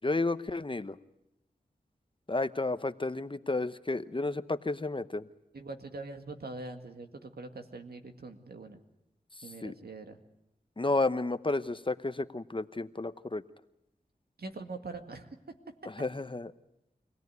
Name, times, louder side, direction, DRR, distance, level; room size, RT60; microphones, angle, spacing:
voice 1, 0.0-1.0 2.3-5.3 9.6-9.7 10.8-13.4 16.0-16.5, left 2 dB, 30° left, 13 dB, 0.9 m, -31 dB
voice 2, 5.5-8.8 9.4-10.2 14.4-15.4 15.8-15.9, right 3 dB, 75° right, 6 dB, 2.1 m, -43 dB
25.0 x 17.5 x 9.5 m, 0.90 s
cardioid pair, 50°, 16 cm